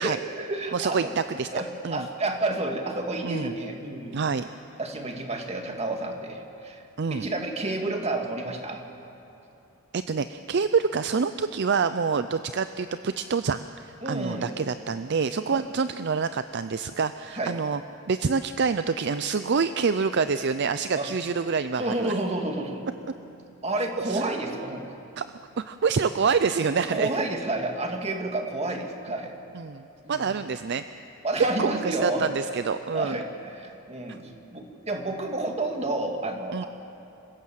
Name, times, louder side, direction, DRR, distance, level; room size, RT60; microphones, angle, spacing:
voice 1, 0.0-1.1 1.5-4.2 4.8-6.8 7.1-8.8 14.0-14.6 15.5-15.6 17.3-17.6 20.9-21.1 21.8-22.8 23.6-24.9 26.8-29.3 30.0-30.3 31.2-32.3 32.9-36.6, right 2 dB, 30° right, 3 dB, 2.0 m, -30 dB
voice 2, 0.7-1.5 1.8-2.1 3.2-3.5 4.1-4.5 7.0-7.3 9.9-17.8 18.1-22.1 24.1-24.3 25.2-25.3 25.6-27.1 29.5-30.8 31.4-33.2 36.5-36.6, right 5 dB, 55° right, 11 dB, 0.5 m, -27 dB
27.5 x 16.5 x 7.5 m, 2.8 s
head